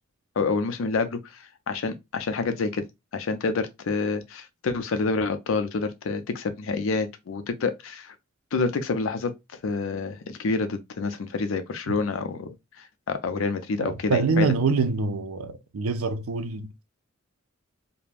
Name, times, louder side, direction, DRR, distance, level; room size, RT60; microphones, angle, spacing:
voice 1, 0.4-2.8 3.1-8.1 8.5-9.3 9.6-14.5, left 4 dB, 70° left, 0.5 m, -28 dB
voice 2, 13.8-16.8, right 4 dB, 85° right, 0.5 m, -25 dB
2.4 x 2.1 x 3.2 m
head